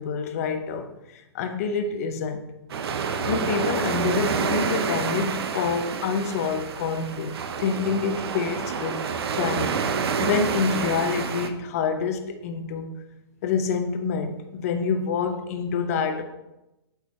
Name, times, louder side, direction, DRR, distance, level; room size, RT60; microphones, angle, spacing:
voice 1, 0.0-2.4 3.2-9.0 9.3-12.9 13.4-16.2, left 5 dB, 35° left, 7 dB, 0.6 m, -27 dB
sound 1, 2.7-11.5, right 6 dB, 65° right, 0.7 m, -28 dB
8.1 x 4.8 x 4.2 m, 0.94 s
hypercardioid pair, 175°, 14 cm